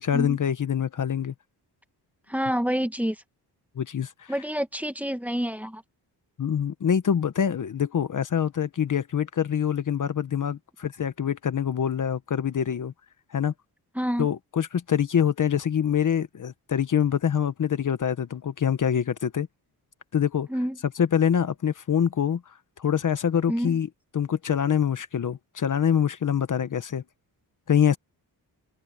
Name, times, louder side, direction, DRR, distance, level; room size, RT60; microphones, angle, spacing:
voice 1, 0.0-1.3 3.8-4.3 6.4-12.9 13.3-13.5 14.2-19.5 20.1-20.5 21.0-22.4 22.8-23.9 24.1-27.0 27.7-28.0, left 8 dB, 50° left, 1.2 m, -25 dB
voice 2, 2.3-3.2 4.3-5.8 13.9-14.3 20.5-20.8 23.5-23.8, equal, 5° right, 1.5 m, -27 dB
open air
wide cardioid pair, 130°, 41 cm